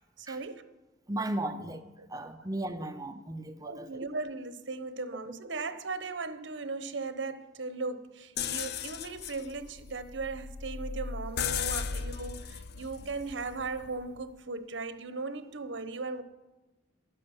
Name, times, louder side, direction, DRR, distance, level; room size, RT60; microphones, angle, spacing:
voice 1, 0.2-0.7 1.4-1.5 2.0-2.1 2.8-2.9 3.6-16.2, right 3 dB, 70° right, 1.0 m, -37 dB
voice 2, 1.1-1.8 2.1-4.0 11.9-12.0, right 1 dB, 20° right, 0.6 m, -36 dB
sound 1, 8.4-14.2, left 7 dB, 55° left, 0.5 m, -37 dB
12.0 x 9.8 x 7.1 m
head